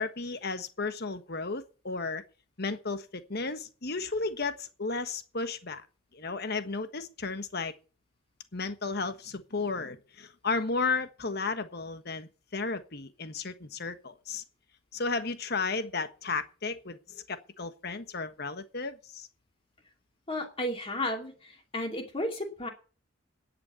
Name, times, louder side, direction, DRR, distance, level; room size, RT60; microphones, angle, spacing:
voice 1, 0.0-2.2 2.6-5.9 6.1-7.7 8.5-14.4 14.9-19.3, left 4 dB, 55° left, 1.4 m, -34 dB
voice 2, 20.3-22.7, left 1 dB, 30° left, 2.7 m, -33 dB
10.5 x 8.4 x 8.3 m
head